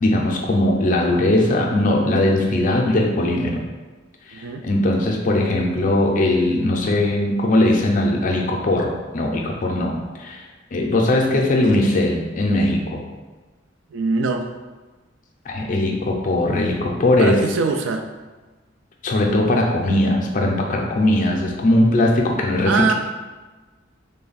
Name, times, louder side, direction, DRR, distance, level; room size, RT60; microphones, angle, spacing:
voice 1, 0.0-3.6 4.3-10.4 10.7-13.0 15.5-17.4 19.0-22.9, left 1 dB, 45° left, 0 dB, 0.5 m, -19 dB
voice 2, 4.3-4.6 13.9-14.4 17.2-18.0 22.6-22.9, right 4 dB, 70° right, 5 dB, 0.4 m, -22 dB
3.3 x 2.2 x 3.9 m, 1.3 s
head